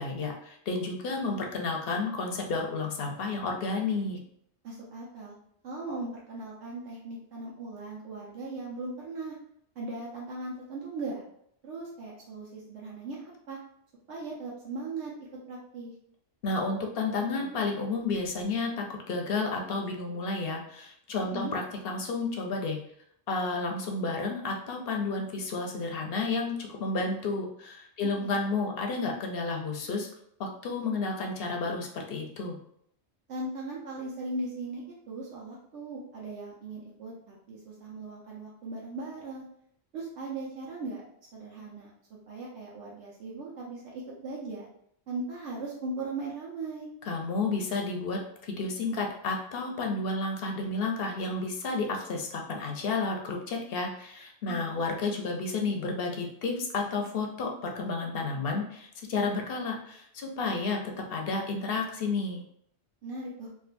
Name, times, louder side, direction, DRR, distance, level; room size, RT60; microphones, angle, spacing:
voice 1, 0.0-4.2 16.4-22.8 23.3-30.1 30.4-32.6 47.1-62.4, left 3 dB, 65° left, 2 dB, 0.8 m, -31 dB
voice 2, 4.6-5.3 5.6-9.4 9.8-11.2 11.6-13.2 13.5-13.6 14.1-15.1 15.5-15.9 21.3-21.5 28.2-28.4 33.3-39.4 39.9-41.0 41.3-44.7 45.1-46.9 54.5-54.8 63.0-63.5, right 2 dB, 90° right, -4 dB, 1.0 m, -38 dB
3.5 x 2.4 x 2.5 m, 0.69 s
omnidirectional pair, 1.2 m